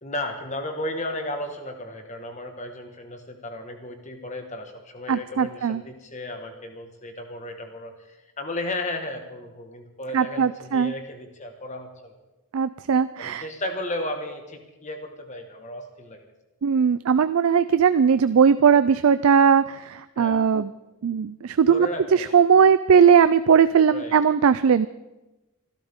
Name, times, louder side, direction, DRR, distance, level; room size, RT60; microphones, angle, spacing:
voice 1, 0.0-12.2 13.2-16.3 20.2-20.4 21.7-22.4 23.9-24.2, left 1 dB, 30° left, 5 dB, 1.6 m, -34 dB
voice 2, 5.1-5.8 10.1-10.9 12.5-13.5 16.6-20.7 21.0-24.9, right 7 dB, 70° right, 13 dB, 0.4 m, -19 dB
25.5 x 12.0 x 3.7 m, 1.0 s
head